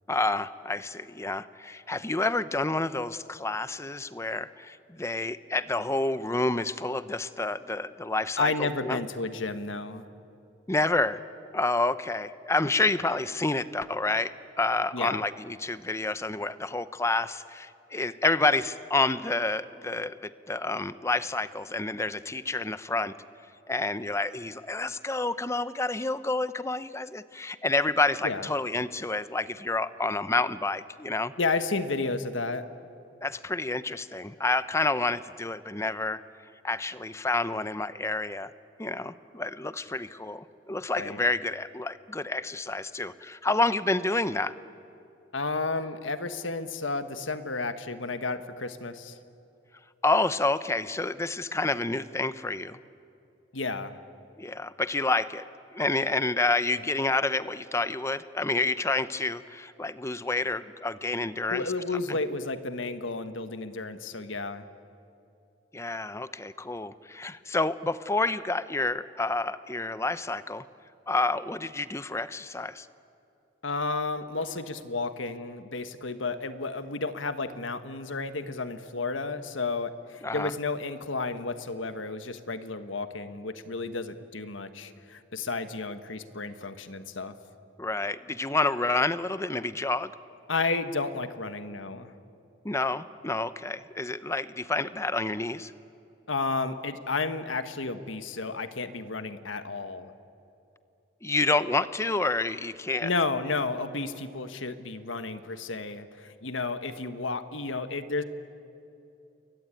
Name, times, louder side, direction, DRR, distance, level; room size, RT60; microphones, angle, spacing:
voice 1, 0.1-9.0 10.7-11.2 11.5-23.1 23.7-31.3 33.2-36.2 36.6-38.5 38.8-44.5 50.0-52.8 54.4-55.4 55.7-61.6 62.1-62.2 65.7-70.6 71.1-72.9 80.2-80.5 87.8-90.1 92.6-95.7 101.2-103.1, left 2 dB, 15° left, 14 dB, 0.7 m, -29 dB
voice 2, 8.4-10.0 14.9-15.2 28.2-28.5 31.4-32.7 40.9-41.2 45.3-49.2 53.5-54.0 61.5-64.6 73.6-87.3 90.5-92.1 96.3-100.1 103.0-108.2, left 3 dB, 85° left, 10 dB, 1.5 m, -32 dB
29.5 x 22.5 x 9.1 m, 2.7 s
head